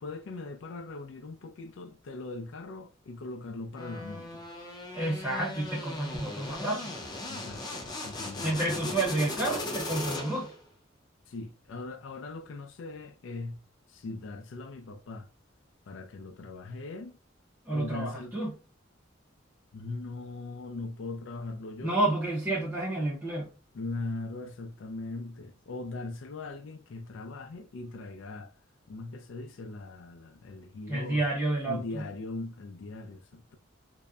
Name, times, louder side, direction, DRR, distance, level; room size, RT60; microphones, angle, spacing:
voice 1, 0.0-4.5 7.3-9.1 11.3-13.6 13.9-15.3 15.9-17.2 17.7-18.4 19.7-22.0 23.7-28.5 28.9-31.2 31.7-33.6, left 3 dB, 75° left, 0.4 m, -40 dB
sound 1, 3.8-10.6, left 2 dB, 20° left, 0.5 m, -38 dB
voice 2, 4.9-7.0 8.4-10.5 17.6-18.5 21.8-23.5 30.9-32.1, right 2 dB, 15° right, 0.7 m, -30 dB
2.6 x 2.1 x 2.3 m
head